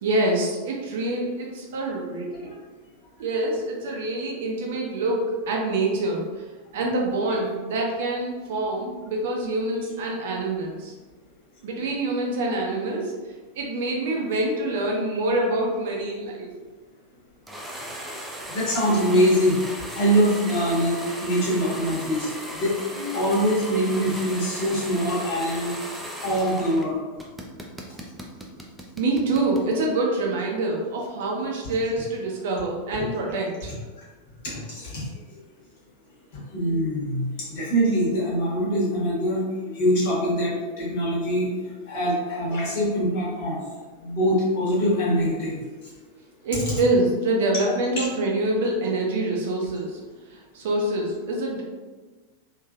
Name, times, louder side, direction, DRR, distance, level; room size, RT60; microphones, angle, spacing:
voice 1, 0.0-2.5 3.2-6.4 6.7-10.9 11.6-13.1 13.6-16.5 29.0-33.7 46.4-50.0 50.3-51.6, right 2 dB, 55° right, -1 dB, 0.6 m, -26 dB
sound 1, 17.5-26.9 27.2-29.7, equal, 5° right, 0.4 m, -37 dB
voice 2, 18.5-19.6 19.9-20.9 21.2-25.7 26.2-27.0 34.5-35.0 36.5-39.5 39.7-41.5 41.9-43.6 44.0-45.6 48.0-48.1, equal, 50° left, -6 dB, 1.3 m, -23 dB
3.3 x 2.6 x 2.4 m, 1.3 s
figure-of-eight pair, 90°, 0 cm